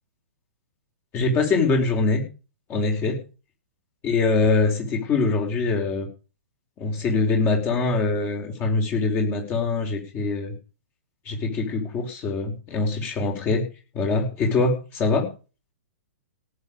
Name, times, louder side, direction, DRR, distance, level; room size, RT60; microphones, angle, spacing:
voice 1, 1.1-2.2 2.7-3.2 4.0-6.1 6.8-10.5 11.2-13.6 13.9-15.3, left 3 dB, 30° left, 2 dB, 4.8 m, -23 dB
18.0 x 7.1 x 5.3 m, 0.34 s
figure-of-eight pair, 120°, 7 cm